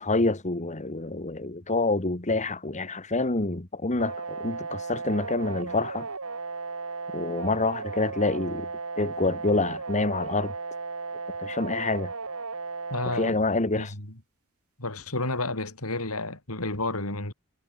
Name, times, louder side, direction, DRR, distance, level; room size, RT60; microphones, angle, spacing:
voice 1, 0.0-6.1 7.1-8.7 9.0-10.5 11.4-12.1 13.1-13.9, left 2 dB, 35° left, 1.9 m, -27 dB
sound 1, 4.0-13.3, right 4 dB, 90° right, 2.9 m, -35 dB
voice 2, 12.9-13.4 13.7-14.2 14.8-17.3, left 2 dB, 90° left, 7.1 m, -31 dB
head